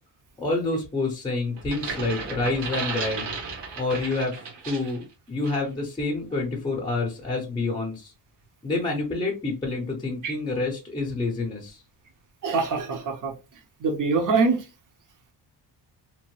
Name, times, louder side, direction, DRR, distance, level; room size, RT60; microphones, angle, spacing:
voice 1, 0.4-3.3 3.8-4.3 4.7-5.0 5.3-8.1 8.6-11.8, left 3 dB, 10° left, 0.6 m, -28 dB
sound 1, 1.6-5.0 5.4-5.7, right 5 dB, 70° right, 1.1 m, -34 dB
voice 2, 12.4-13.3 13.8-14.6, right 4 dB, 45° right, 0.7 m, -24 dB
2.9 x 2.1 x 3.0 m
cardioid pair, 130°, 44 cm